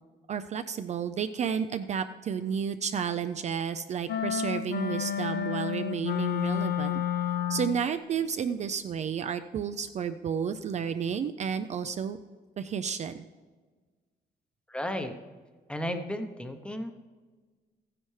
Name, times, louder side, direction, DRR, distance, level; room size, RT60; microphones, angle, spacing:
voice 1, 0.3-7.0 7.5-12.2 12.6-13.2, right 7 dB, 45° right, 9 dB, 0.4 m, -31 dB
sound 1, 4.1-7.9, left 9 dB, 70° left, 0.6 m, -30 dB
voice 2, 14.7-15.1 15.7-16.9, left 1 dB, 5° left, 7 dB, 0.7 m, -33 dB
14.5 x 10.0 x 3.2 m, 1.4 s
wide cardioid pair, 170°, 17 cm